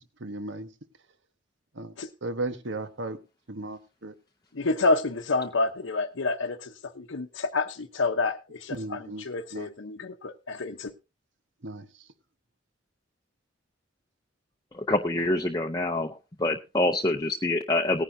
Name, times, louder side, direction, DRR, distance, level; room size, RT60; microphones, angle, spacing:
voice 1, 0.2-0.7 1.8-1.9 2.2-3.2 3.5-4.1 8.7-9.2 9.5-9.7 11.6-11.9, right 2 dB, 75° right, 1.2 m, -35 dB
voice 2, 4.5-10.9, left 3 dB, 85° left, 0.8 m, -29 dB
voice 3, 14.7-16.1 16.4-18.0, left 2 dB, 20° left, 0.6 m, -26 dB
18.5 x 10.0 x 2.7 m
head